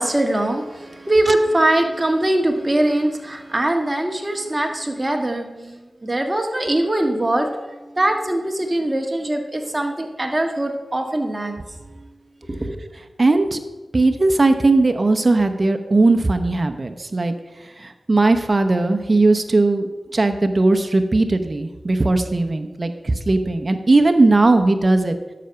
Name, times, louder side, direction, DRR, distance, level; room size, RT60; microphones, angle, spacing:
voice 1, 0.0-11.5 11.8-12.1 12.4-12.7, right 1 dB, 25° right, 3 dB, 1.7 m, -22 dB
voice 2, 13.2-13.6 13.9-17.3 17.8-25.1, right 2 dB, 45° right, 7 dB, 0.9 m, -18 dB
10.0 x 6.8 x 5.8 m, 1.2 s
cardioid pair, 50°, 0 cm